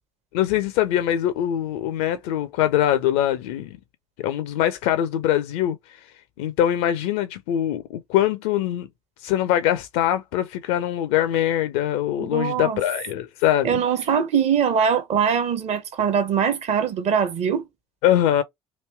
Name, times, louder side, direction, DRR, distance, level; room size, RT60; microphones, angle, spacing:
voice 1, 0.3-3.8 4.2-6.0 6.4-8.9 9.2-13.8 18.0-18.4, left 11 dB, 65° left, 0.4 m, -23 dB
voice 2, 12.2-12.8 13.6-17.7, right 7 dB, 50° right, 0.9 m, -22 dB
3.0 x 2.7 x 3.2 m
figure-of-eight pair, 55°, 15 cm